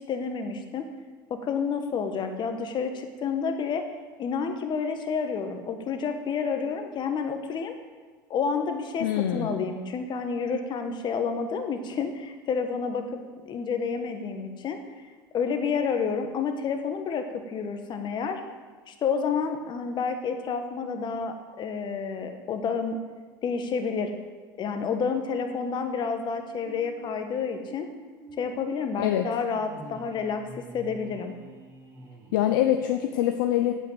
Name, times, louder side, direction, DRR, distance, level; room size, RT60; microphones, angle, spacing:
voice 1, 0.1-0.9 1.3-3.8 4.2-7.7 8.3-13.2 13.5-14.8 15.3-18.4 18.9-23.0 23.4-24.1 24.6-27.9 28.4-31.3, left 5 dB, 45° left, 6 dB, 1.5 m, -29 dB
voice 2, 9.0-9.7 29.0-29.3 32.3-33.7, left 12 dB, 80° left, 6 dB, 0.7 m, -24 dB
sound 1, 25.4-32.9, right 2 dB, 30° right, 2.6 m, -48 dB
8.3 x 8.1 x 7.9 m, 1.4 s
hypercardioid pair, 90°, 11 cm